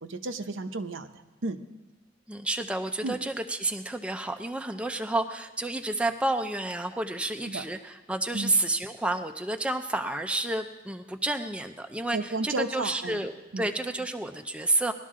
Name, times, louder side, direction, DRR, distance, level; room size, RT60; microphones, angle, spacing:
voice 1, 0.0-1.1 1.4-1.6 3.0-3.2 7.5-7.6 8.3-8.5 12.1-13.2 13.5-13.7, right 2 dB, 75° right, 8 dB, 0.8 m, -32 dB
voice 2, 2.3-14.9, right 2 dB, 5° right, 5 dB, 0.5 m, -30 dB
20.0 x 12.0 x 3.7 m, 1.1 s
head